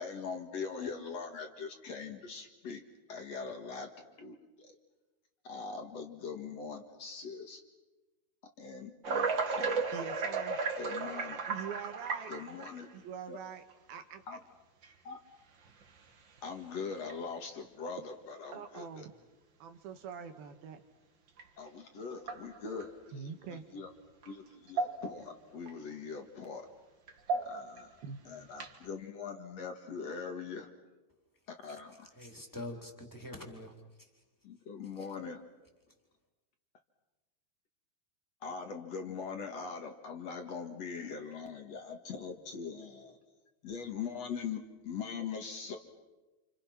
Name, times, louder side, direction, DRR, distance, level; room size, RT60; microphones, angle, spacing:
voice 1, 0.0-2.8 3.1-3.9 4.2-4.8 5.4-7.6 8.6-9.9 10.8-11.4 12.3-12.9 13.3-13.4 14.3-14.4 15.0-15.2 16.4-19.1 21.6-23.3 23.7-23.9 24.3-26.7 27.5-28.0 28.3-30.7 31.6-32.1 34.4-35.4 38.4-43.2 43.6-45.8, left 5 dB, 50° left, 5 dB, 2.4 m, -42 dB
sound 1, 9.0-12.9 13.7-13.8 14.8-14.9 15.7-16.0 16.4-16.5 17.0-17.1 18.5-18.6 21.4-21.5 22.2-22.9 24.2-24.3 24.7-25.3 25.7-25.8 27.1-27.8 28.5-28.8, right 4 dB, 45° right, 1.7 m, -34 dB
voice 2, 9.9-10.6 11.5-12.3 12.9-14.2 18.5-19.1 19.6-20.8 23.1-23.6 28.0-28.2, right 7 dB, 75° right, 6 dB, 3.2 m, -44 dB
voice 3, 32.1-34.2 34.9-35.1, left 1 dB, 5° left, 2 dB, 3.0 m, -46 dB
29.5 x 29.0 x 5.9 m, 1.1 s
omnidirectional pair, 4.5 m